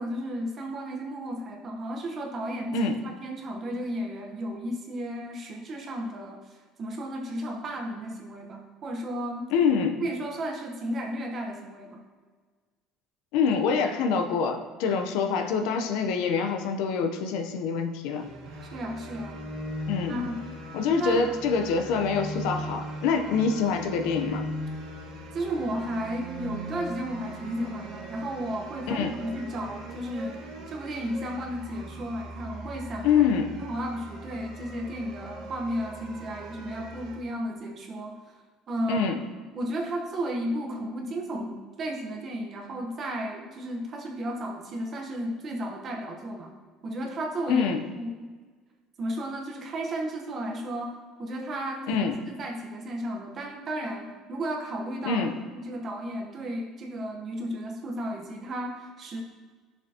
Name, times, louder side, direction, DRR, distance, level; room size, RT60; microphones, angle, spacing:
voice 1, 0.0-2.9 3.2-9.5 10.0-12.0 18.7-19.4 20.1-20.4 21.0-21.3 25.3-33.2 33.6-38.2 38.7-39.1 39.5-46.5 46.8-47.7 47.9-48.3 49.0-55.2 55.5-59.2, right 1 dB, 30° right, 1 dB, 1.1 m, -33 dB
voice 2, 9.5-10.0 13.3-18.3 19.9-20.2 20.7-24.4 28.9-29.1 33.0-33.5 38.9-39.2 47.5-47.8 51.9-52.2 55.0-55.3, left 5 dB, 75° left, 5 dB, 0.8 m, -25 dB
sound 1, 18.1-37.2, equal, 85° right, 1.6 m, -39 dB
10.5 x 6.8 x 2.9 m, 1.5 s
cardioid pair, 165°, 0 cm